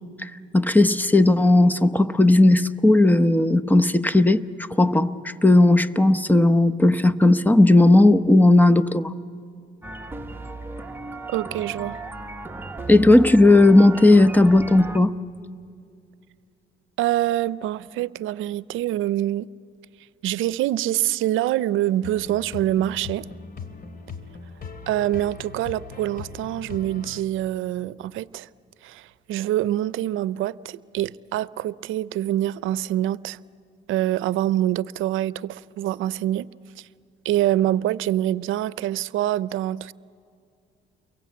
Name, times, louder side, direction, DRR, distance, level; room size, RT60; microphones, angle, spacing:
voice 1, 0.2-4.4 4.8-9.1 12.9-15.2, left 2 dB, 10° left, 0.9 m, -16 dB
sound 1, 9.8-15.0, right 3 dB, 10° right, 1.2 m, -36 dB
voice 2, 11.3-12.0 17.0-19.5 20.2-23.3 24.9-28.5 28.8-33.4 33.9-36.5 37.2-39.9, right 13 dB, 85° right, 0.6 m, -25 dB
sound 2, 22.0-27.2, left 5 dB, 45° left, 2.6 m, -39 dB
29.0 x 23.0 x 8.3 m
cardioid pair, 90°, 20 cm